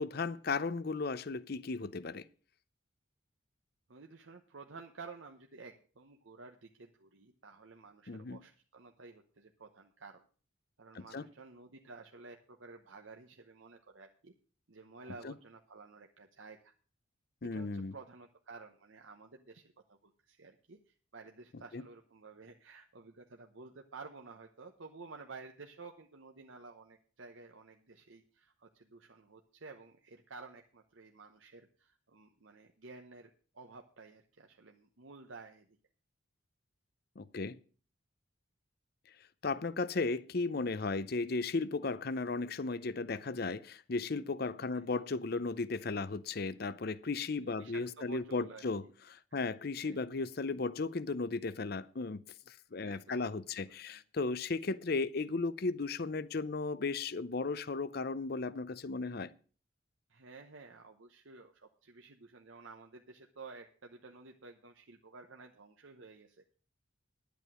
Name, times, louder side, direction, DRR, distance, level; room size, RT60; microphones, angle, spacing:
voice 1, 0.0-2.2 8.1-8.4 10.9-11.3 15.2-15.3 17.4-17.9 21.7-21.8 37.2-37.6 39.4-48.8 49.1-52.2 52.5-59.3, left 3 dB, 50° left, 0.6 m, -35 dB
voice 2, 3.9-10.3 10.8-14.3 14.7-16.7 17.4-35.7 44.7-44.8 47.4-48.9 49.3-49.4 49.8-50.2 52.8-53.2 53.6-54.0 60.1-66.5, right 4 dB, 70° right, 1.0 m, -53 dB
11.0 x 8.3 x 6.2 m
head